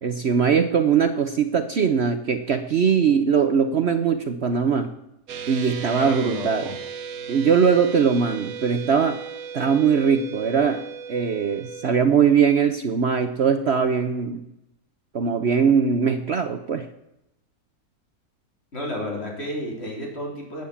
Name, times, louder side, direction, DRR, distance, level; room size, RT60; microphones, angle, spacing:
voice 1, 0.0-4.9 5.5-6.7 7.3-9.2 9.5-10.8 11.1-14.4 15.1-16.9, right 6 dB, 50° right, 9 dB, 1.0 m, -21 dB
sound 1, 5.3-12.0, right 6 dB, 70° right, 1.4 m, -36 dB
voice 2, 5.9-6.7 18.7-20.6, left 1 dB, 40° left, -1 dB, 4.2 m, -31 dB
13.0 x 9.3 x 8.6 m, 0.86 s
omnidirectional pair, 1.6 m